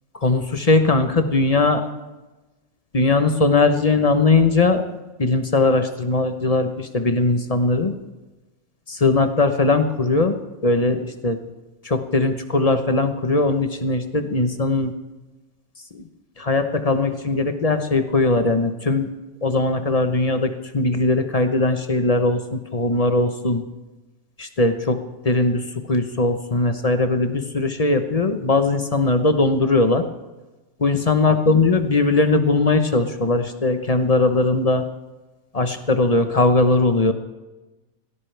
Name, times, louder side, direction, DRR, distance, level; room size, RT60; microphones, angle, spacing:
voice 1, 0.2-1.8 2.9-4.8 5.2-7.9 8.9-10.3 10.6-11.4 11.8-14.9 15.9-16.0 16.4-19.1 19.4-23.6 24.4-25.0 25.2-25.6 25.9-30.0 30.8-34.8 35.5-37.1, left 3 dB, 30° left, 7 dB, 0.7 m, -19 dB
18.5 x 16.5 x 3.4 m, 1.1 s
omnidirectional pair, 1.9 m